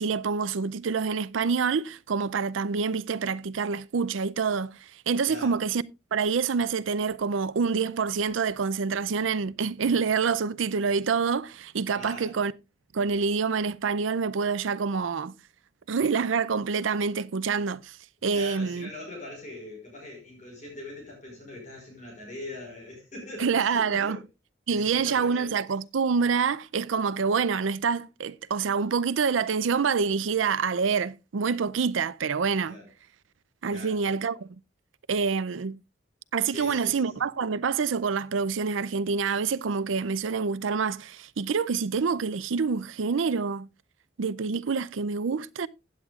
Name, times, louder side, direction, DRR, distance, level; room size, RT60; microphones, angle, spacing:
voice 1, 0.0-5.8 6.1-12.5 12.9-15.3 15.9-18.0 18.2-18.9 23.4-24.2 24.7-32.8 33.6-34.5 35.1-35.8 36.3-43.7 44.2-45.7, right 5 dB, 85° right, 0.5 m, -27 dB
voice 2, 12.0-12.3 18.3-24.2 24.7-25.5 32.6-32.9 33.7-34.0 36.5-37.3, left 1 dB, 40° left, 5.2 m, -42 dB
15.5 x 8.6 x 2.4 m
head